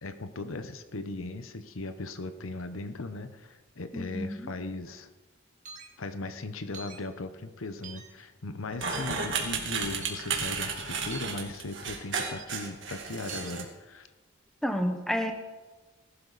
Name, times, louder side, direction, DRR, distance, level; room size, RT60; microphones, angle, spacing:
voice 1, 0.0-5.1 6.0-14.1, left 2 dB, 85° left, 10 dB, 0.9 m, -38 dB
voice 2, 3.9-4.5 14.6-15.3, equal, ahead, 5 dB, 1.1 m, -30 dB
sound 1, 5.7-5.9 6.7-7.0 7.8-8.1 8.9-9.2 10.0-10.2 11.1-11.3 12.2-12.4 13.3-13.5, right 5 dB, 35° right, 1.8 m, -43 dB
sound 2, 8.7-13.6, right 5 dB, 65° right, 2.2 m, -33 dB
18.5 x 12.0 x 4.1 m, 1.2 s
head